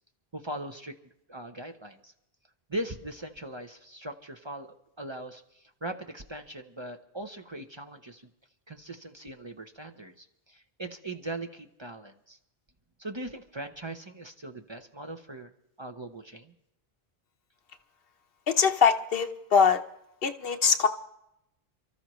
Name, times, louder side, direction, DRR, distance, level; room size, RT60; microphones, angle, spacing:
voice 1, 0.3-1.0 1.3-2.1 2.7-8.3 8.7-12.4 13.0-15.5 15.8-16.5, right 1 dB, 30° right, 5 dB, 0.7 m, -40 dB
voice 2, 18.5-19.8 20.2-20.9, left 6 dB, 70° left, 8 dB, 1.0 m, -22 dB
28.0 x 13.5 x 3.1 m, 0.82 s
omnidirectional pair, 1.0 m